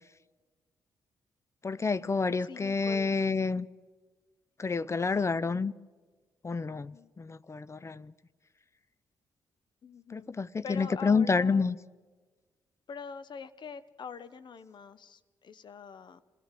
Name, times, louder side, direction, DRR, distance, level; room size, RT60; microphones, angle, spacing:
voice 1, 1.6-3.7 4.6-5.7 6.4-8.1 10.1-11.8, left 4 dB, 30° left, 0.6 m, -29 dB
voice 2, 2.5-3.1 6.9-7.1 9.8-10.3 10.6-11.7 12.9-16.2, left 6 dB, 55° left, 1.1 m, -44 dB
26.0 x 16.5 x 7.7 m
hypercardioid pair, 45°, 9 cm